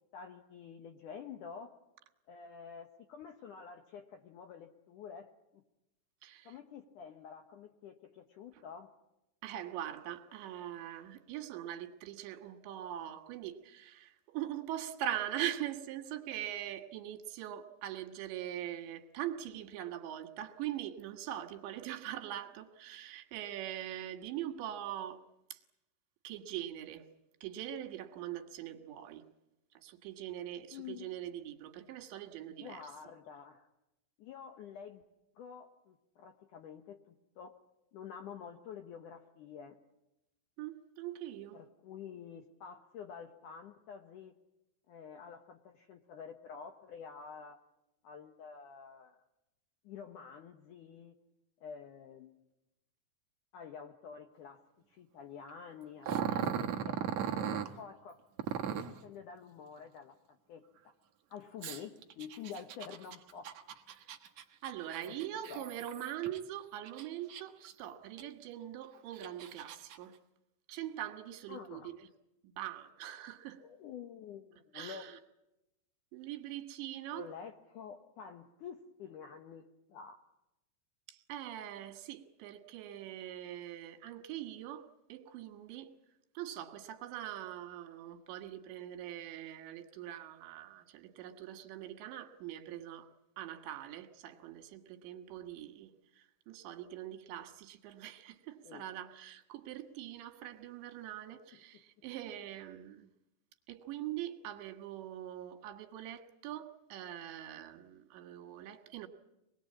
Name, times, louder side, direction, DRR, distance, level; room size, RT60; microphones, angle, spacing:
voice 1, 0.1-1.7 2.3-5.6 6.4-8.9 30.7-31.1 32.5-33.7 34.2-35.0 35.4-37.6 37.9-39.8 41.5-44.3 44.9-47.6 48.0-49.2 49.8-51.2 51.6-52.4 53.5-54.6 54.9-57.0 57.4-58.2 58.7-60.9 61.3-63.5 65.0-65.2 65.5-65.8 71.5-71.9 73.6-75.1 77.1-80.2 98.6-98.8, left 7 dB, 75° left, 1.9 m, -49 dB
voice 2, 6.2-6.6 8.5-8.6 9.4-25.2 25.5-25.6 26.2-27.1 27.4-29.2 29.8-32.8 40.6-41.6 63.9-64.1 64.6-70.2 70.7-72.1 72.4-73.6 74.7-75.2 76.1-77.3 81.1-85.9 86.4-93.1 93.4-103.1 103.7-109.1, right 12 dB, 80° right, 3.8 m, -42 dB
Growling, 56.0-57.7 58.4-59.0 61.6-66.4 66.8-67.7 68.2-68.3 68.9-70.0, right 9 dB, 65° right, 1.8 m, -37 dB
25.0 x 21.0 x 8.6 m
omnidirectional pair, 5.1 m